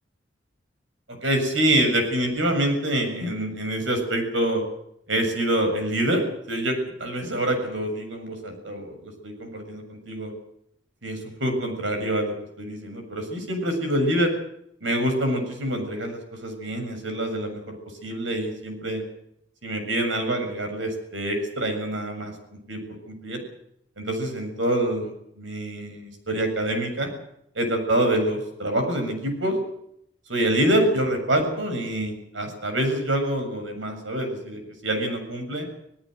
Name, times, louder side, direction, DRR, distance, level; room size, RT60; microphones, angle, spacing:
voice 1, 1.1-4.6 5.1-10.3 11.0-14.3 14.8-17.8 18.0-19.0 19.6-22.3 22.7-23.4 24.0-27.1 27.6-29.6 30.3-35.7, right 1 dB, 90° right, 5 dB, 7.2 m, -26 dB
27.0 x 18.0 x 6.5 m, 0.74 s
head